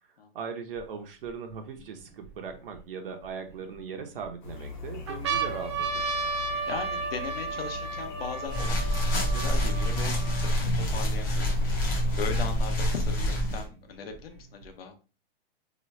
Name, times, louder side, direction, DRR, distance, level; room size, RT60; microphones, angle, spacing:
voice 1, 0.3-6.1, right 5 dB, 65° right, 4 dB, 0.7 m, -39 dB
sound 1, 0.8-0.9 1.5-2.8 3.5-4.3 4.7-4.8 5.1-10.7 11.4-11.5 11.7-12.7 13.6-14.7, right 4 dB, 30° right, 0.4 m, -34 dB
sound 2, 4.4-12.6, left 4 dB, 50° left, 1.1 m, -42 dB
voice 2, 6.7-11.6 12.2-14.9, left 6 dB, 70° left, 5 dB, 0.9 m, -38 dB
sound 3, 8.5-13.6, equal, 20° left, 0.6 m, -27 dB
3.0 x 2.3 x 4.1 m, 0.34 s
hypercardioid pair, 175°, 30 cm